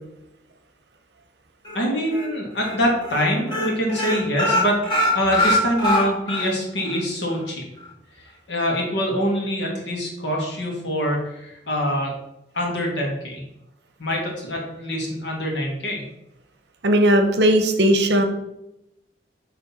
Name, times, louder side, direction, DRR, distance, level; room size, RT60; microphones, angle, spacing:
sound 1, 1.6-2.2 2.6-2.8 3.0-3.2 3.5-6.5 6.8-6.9 7.3-7.4, left 1 dB, 25° left, 1.9 m, -22 dB
voice 1, 1.7-7.6 8.5-12.1 12.5-13.4 14.0-16.0, equal, 85° left, -1 dB, 1.9 m, -24 dB
voice 2, 16.8-18.2, right 1 dB, 70° right, 6 dB, 0.8 m, -17 dB
6.1 x 3.4 x 5.5 m, 0.86 s
head